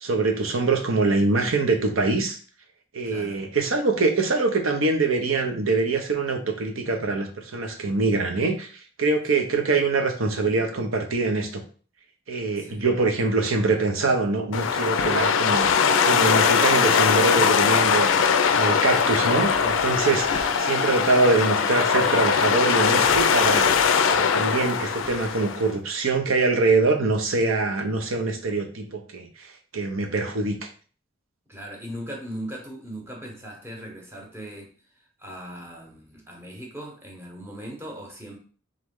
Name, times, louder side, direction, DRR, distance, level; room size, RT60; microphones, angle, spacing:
voice 1, 0.0-2.4 2.9-11.6 12.3-15.7 16.0-23.7 24.1-29.3 29.7-30.5, right 3 dB, 75° right, 5 dB, 0.8 m, -24 dB
voice 2, 3.0-3.4 12.6-12.8 16.8-16.9 20.3-20.7 31.5-38.4, equal, 10° right, 0 dB, 0.9 m, -39 dB
sound 1, 14.5-25.7, left 6 dB, 65° left, 0.4 m, -21 dB
3.7 x 3.2 x 3.7 m, 0.40 s
head